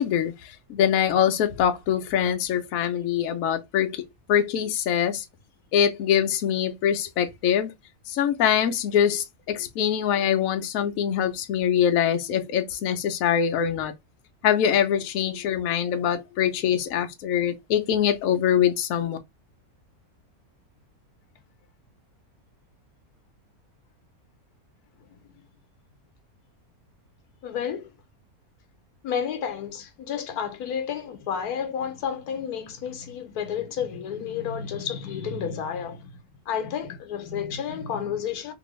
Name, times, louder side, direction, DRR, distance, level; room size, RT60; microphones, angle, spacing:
voice 1, 0.0-5.2 5.7-7.7 8.1-13.9 14.4-19.2, left 9 dB, 70° left, 1.0 m, -24 dB
voice 2, 27.4-27.9 29.0-36.1 36.5-38.5, left 8 dB, 90° left, 1.2 m, -31 dB
2.9 x 2.6 x 3.1 m
omnidirectional pair, 1.6 m